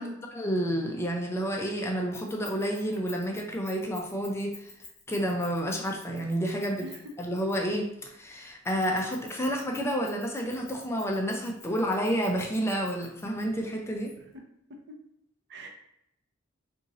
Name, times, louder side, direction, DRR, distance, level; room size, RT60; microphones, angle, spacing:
voice 1, 0.3-4.7 5.1-6.9 7.2-14.1, equal, 15° left, 1 dB, 0.4 m, -30 dB
Keys jangling, 2.1-7.8 8.6-13.4, left 4 dB, 30° left, 1.1 m, -49 dB
voice 2, 6.8-7.1 14.2-14.4 14.7-14.9 15.5-15.7, equal, 55° right, 3 dB, 0.6 m, -42 dB
2.9 x 2.6 x 3.6 m, 0.77 s
head